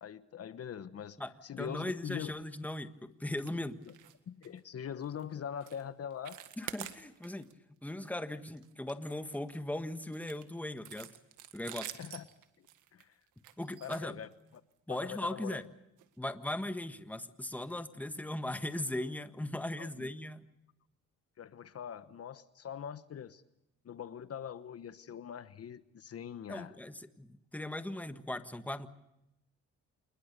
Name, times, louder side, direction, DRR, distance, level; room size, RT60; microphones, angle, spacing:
voice 1, 0.0-1.2 1.4-2.3 4.3-6.4 12.0-12.3 12.9-13.1 13.8-14.3 14.9-15.6 19.8-20.1 21.4-23.4 23.8-26.7, left 8 dB, 50° left, 13 dB, 1.1 m, -42 dB
voice 2, 1.2-3.8 6.6-7.5 7.8-11.1 11.5-11.9 13.6-14.1 14.9-15.7 16.2-20.4 26.5-28.9, left 1 dB, 5° left, 9 dB, 1.5 m, -38 dB
sound 1, 3.3-3.6 3.8-4.2 4.4-4.6 5.0-5.2 5.6-5.8 6.1-7.5 7.9-8.1 8.5-9.6 10.1-14.7 15.5-15.6 16.0-16.1 16.5-16.6, right 12 dB, 90° right, 1.9 m, -48 dB
27.5 x 21.0 x 6.7 m, 0.87 s
cardioid pair, 90°, 30 cm